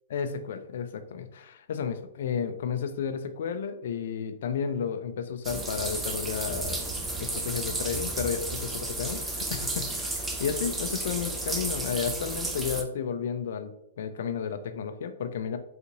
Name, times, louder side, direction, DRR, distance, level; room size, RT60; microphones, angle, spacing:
voice 1, 0.1-6.8 7.2-13.7 14.0-15.6, left 7 dB, 65° left, 8 dB, 0.4 m, -32 dB
sound 1, 5.4-12.8, right 2 dB, 10° right, 0.4 m, -32 dB
3.8 x 2.5 x 2.9 m, 0.76 s
hypercardioid pair, 135°, 0 cm